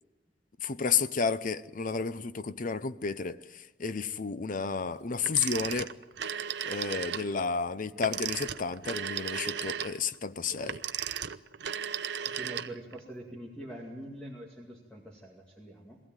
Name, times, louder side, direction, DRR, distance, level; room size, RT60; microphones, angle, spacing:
voice 1, 0.6-5.9 6.7-10.8, left 5 dB, 50° left, 0.7 m, -31 dB
Telephone, 5.2-7.3 8.0-13.0, right 9 dB, 70° right, 0.7 m, -35 dB
voice 2, 12.2-16.0, right 1 dB, 5° left, 2.4 m, -44 dB
22.0 x 16.0 x 9.1 m
head